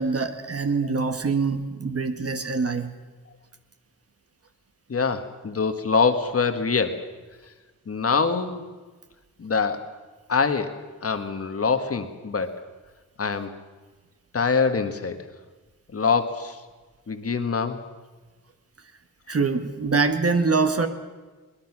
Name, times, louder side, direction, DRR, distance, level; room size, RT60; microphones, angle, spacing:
voice 1, 0.0-2.9 19.3-20.9, right 4 dB, 45° right, 8 dB, 1.3 m, -24 dB
voice 2, 4.9-7.0 7.9-8.6 9.4-9.9 10.3-12.6 13.2-13.5 14.3-15.2 15.9-16.6 17.1-17.8, left 5 dB, 45° left, 8 dB, 1.5 m, -24 dB
22.0 x 20.5 x 6.0 m, 1.3 s
wide cardioid pair, 165°, 34 cm